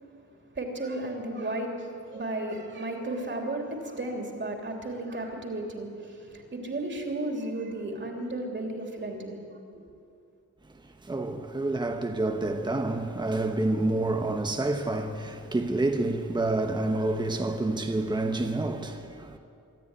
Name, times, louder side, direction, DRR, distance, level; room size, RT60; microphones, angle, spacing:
voice 1, 0.5-9.4 9.7-9.8, right 2 dB, 40° right, 3.3 m, -34 dB
voice 2, 10.8-19.4, right 2 dB, 15° right, 1.1 m, -28 dB
24.5 x 13.5 x 9.8 m
wide cardioid pair, 165°, 30 cm